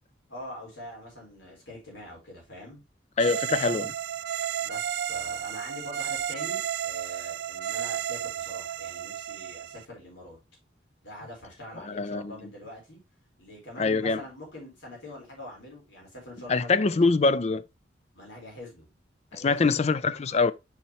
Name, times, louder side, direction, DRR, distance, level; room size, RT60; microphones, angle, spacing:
voice 1, 0.3-2.8 4.6-10.4 11.0-13.0 13.4-16.7 18.1-18.9 19.3-19.8, left 1 dB, 85° left, 4.2 m, -44 dB
voice 2, 3.2-3.9 11.9-12.3 13.8-14.2 16.5-17.6 19.3-20.5, left 4 dB, 35° left, 0.4 m, -24 dB
sound 1, 3.2-9.8, right 10 dB, 60° right, 0.3 m, -32 dB
7.2 x 5.7 x 3.0 m
head